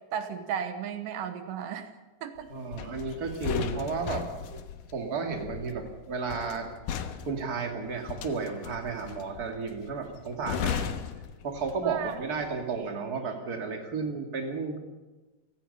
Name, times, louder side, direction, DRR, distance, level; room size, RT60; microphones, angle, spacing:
voice 1, 0.0-1.9 2.2-2.5 11.8-12.1, right 8 dB, 75° right, 8 dB, 2.7 m, -34 dB
voice 2, 2.5-4.6 4.9-6.7 7.3-10.9 11.4-14.8, right 4 dB, 30° right, 3 dB, 2.7 m, -33 dB
sound 1, 2.7-12.1 12.4-12.6, left 7 dB, 80° left, 2.7 m, -36 dB
28.5 x 18.0 x 5.6 m, 1.2 s
omnidirectional pair, 3.8 m